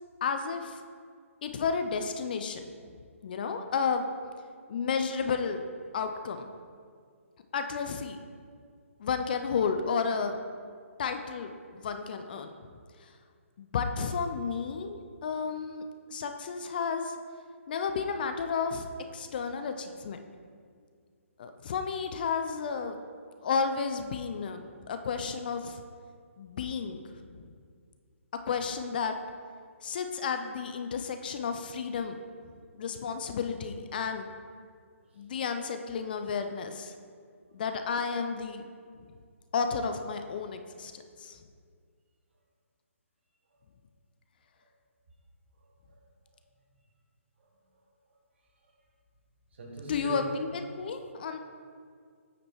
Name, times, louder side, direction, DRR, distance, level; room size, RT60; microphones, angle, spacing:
voice 1, 0.2-0.8 1.4-2.6 3.2-4.1 4.7-5.6 5.9-6.5 7.5-8.2 9.0-10.4 11.0-12.5 13.0-13.1 13.6-15.8 16.1-17.1 17.7-18.9 19.1-20.2 21.4-23.0 23.4-25.8 26.4-27.5 28.5-29.2 29.8-32.2 32.7-34.3 35.2-36.9 37.5-38.6 39.5-41.4 49.9-50.5 50.8-51.4, left 5 dB, 40° left, 7 dB, 0.4 m, -32 dB
voice 2, 45.6-46.0 46.3-46.4 47.4-47.5 48.0-48.1 48.6-48.7 49.5-50.2, right 4 dB, 50° right, 0 dB, 1.3 m, -44 dB
8.7 x 5.1 x 3.0 m, 2.1 s
figure-of-eight pair, 140°, 8 cm